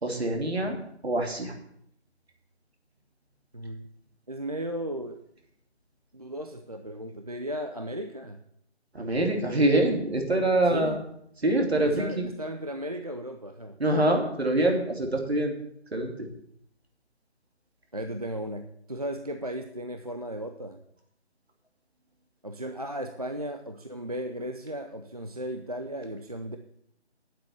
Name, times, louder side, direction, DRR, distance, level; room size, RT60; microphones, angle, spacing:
voice 1, 0.0-0.8 1.0-1.5 8.9-11.0 11.4-12.3 13.8-15.5 15.9-16.3, right 1 dB, 65° right, 2 dB, 2.8 m, -25 dB
voice 2, 4.3-5.2 6.1-8.4 10.7-11.0 11.8-13.8 17.9-20.8 22.4-26.6, right 1 dB, 35° right, 5 dB, 0.5 m, -35 dB
9.6 x 7.6 x 7.1 m, 0.71 s
figure-of-eight pair, 165°, 34 cm